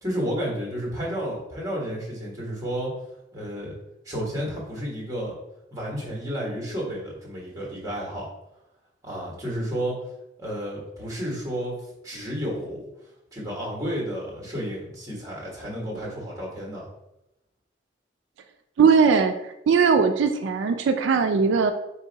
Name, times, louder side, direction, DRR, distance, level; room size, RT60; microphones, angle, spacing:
voice 1, 0.0-2.9 3.3-3.7 4.0-5.3 5.7-8.3 9.0-10.0 10.4-11.7 12.0-12.9 13.3-16.9, equal, 20° right, -3 dB, 1.4 m, -31 dB
voice 2, 18.8-19.4 19.7-21.7, right 5 dB, 85° right, 6 dB, 0.3 m, -19 dB
4.3 x 2.7 x 3.9 m, 0.88 s
head